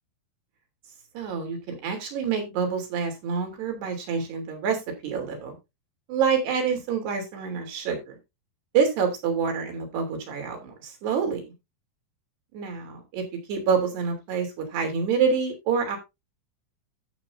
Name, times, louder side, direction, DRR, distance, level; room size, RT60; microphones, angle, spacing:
voice 1, 1.1-5.6 6.1-8.2 8.7-11.4 12.5-13.2 13.5-16.0, right 6 dB, 80° right, 3 dB, 5.1 m, -27 dB
14.0 x 7.4 x 2.6 m, 0.23 s
omnidirectional pair, 4.7 m